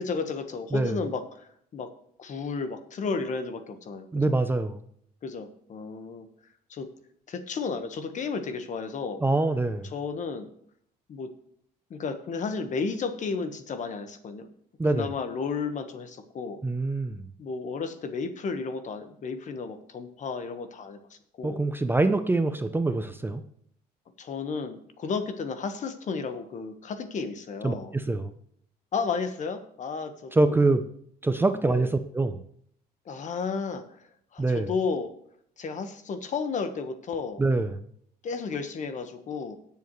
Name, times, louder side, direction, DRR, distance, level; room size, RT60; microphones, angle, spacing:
voice 1, 0.0-1.9 2.2-4.4 5.2-6.3 6.7-6.9 7.3-9.2 9.9-10.5 11.1-11.3 11.9-14.5 14.9-16.6 17.4-21.0 21.4-21.7 24.2-27.9 28.9-30.6 31.6-31.9 33.1-33.8 34.3-35.1 35.6-37.4 38.2-39.6, left 5 dB, 45° left, 8 dB, 1.3 m, -33 dB
voice 2, 0.7-1.0 4.1-4.8 9.2-9.9 14.8-15.1 16.6-17.3 21.4-23.4 27.6-28.3 30.3-30.8 31.2-32.4 34.4-34.7 37.4-37.9, right 2 dB, 10° right, 9 dB, 0.6 m, -25 dB
18.5 x 7.1 x 3.2 m, 0.66 s
cardioid pair, 110°, 17 cm